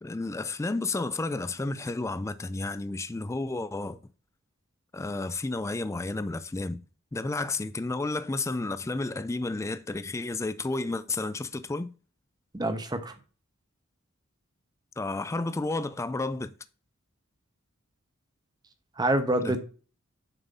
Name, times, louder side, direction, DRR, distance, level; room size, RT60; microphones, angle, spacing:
voice 1, 0.0-4.0 4.9-6.8 7.1-11.9 15.0-16.5 19.4-19.6, left 2 dB, 15° left, 0.3 m, -31 dB
voice 2, 12.5-13.1 19.0-19.6, right 1 dB, 20° right, 0.8 m, -26 dB
7.1 x 2.6 x 5.3 m
head